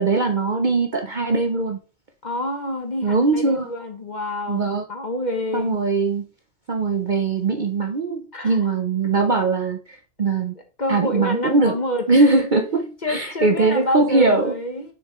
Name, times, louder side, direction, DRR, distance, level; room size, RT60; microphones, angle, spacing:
voice 1, 0.0-1.8 3.0-3.7 4.5-4.8 5.5-6.3 6.7-10.5 10.9-11.8 12.1-14.6, right 3 dB, 45° right, 0.7 m, -21 dB
voice 2, 2.2-5.7 8.3-8.6 10.8-12.3 13.0-14.9, left 1 dB, 35° left, 1.1 m, -27 dB
6.6 x 4.7 x 3.1 m
omnidirectional pair, 1.4 m